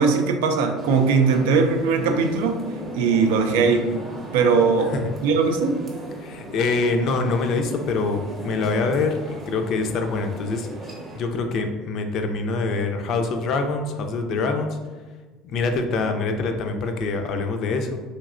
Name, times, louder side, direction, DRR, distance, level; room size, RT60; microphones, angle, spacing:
voice 1, 0.0-2.6 2.9-3.9 4.3-4.9 5.2-5.8, right 5 dB, 90° right, 6 dB, 0.3 m, -19 dB
sound 1, 0.8-11.2, right 1 dB, 35° right, 0.7 m, -37 dB
voice 2, 6.2-10.7 11.1-14.7 15.4-18.0, left 3 dB, 55° left, 5 dB, 0.4 m, -25 dB
3.1 x 2.7 x 2.4 m, 1.3 s
supercardioid pair, 100°, 0 cm